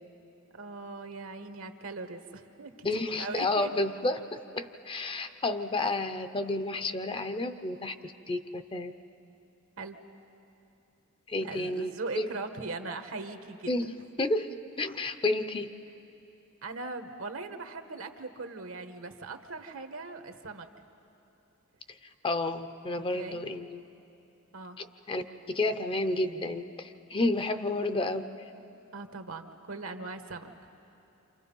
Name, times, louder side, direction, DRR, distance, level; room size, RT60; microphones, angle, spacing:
voice 1, 0.5-2.7 3.2-3.7 9.8-10.0 11.4-13.7 14.2-14.3 16.6-20.7 23.1-23.4 24.5-24.8 28.9-30.5, right 3 dB, 70° right, 7 dB, 1.3 m, -40 dB
voice 2, 2.8-8.9 11.3-12.3 13.7-13.8 14.2-15.7 22.2-23.8 24.8-28.3, left 2 dB, 25° left, 10 dB, 0.7 m, -31 dB
28.5 x 27.0 x 5.4 m, 2.9 s
head